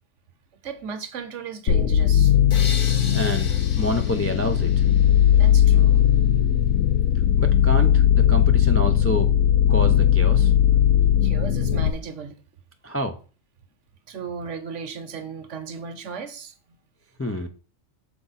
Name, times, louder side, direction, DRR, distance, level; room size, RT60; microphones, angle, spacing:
voice 1, 0.6-2.4 5.4-6.1 7.0-7.2 11.2-12.4 14.1-16.5, right 6 dB, 65° right, 1.2 m, -36 dB
sound 1, 1.7-11.9, left 10 dB, 90° left, 1.0 m, -18 dB
sound 2, 2.5-5.5, left 4 dB, 45° left, 0.8 m, -36 dB
voice 2, 3.1-4.7 7.4-9.3 9.7-10.5 12.8-13.1 17.2-17.5, left 1 dB, 25° left, 0.3 m, -28 dB
6.7 x 4.9 x 4.0 m
omnidirectional pair, 1.4 m